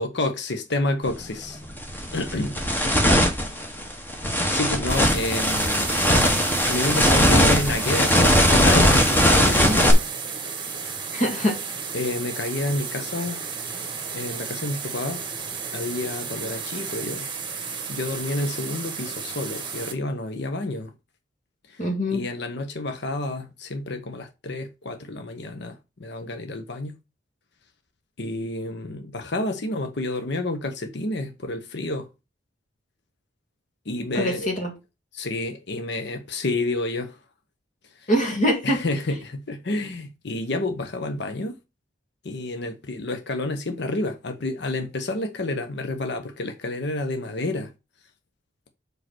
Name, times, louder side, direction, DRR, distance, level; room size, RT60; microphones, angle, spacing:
voice 1, 0.0-1.6 2.1-2.6 4.5-5.8 6.3-10.0 10.9-11.0 11.9-13.4 14.1-15.2 15.7-17.3 17.9-20.9 21.7-21.8 22.1-26.9 28.2-32.1 33.9-34.5 35.1-37.2 37.9-38.1 38.6-41.6 42.2-47.7, left 2 dB, 60° left, 0.9 m, -29 dB
sound 1, 1.1-1.2 1.7-9.9, equal, 10° left, 1.3 m, -19 dB
sound 2, 4.9-19.9, right 6 dB, 25° right, 1.4 m, -33 dB
voice 2, 11.1-11.6 21.8-22.2 34.1-34.7 38.1-38.8, equal, 40° left, 1.8 m, -23 dB
5.1 x 4.8 x 6.0 m
head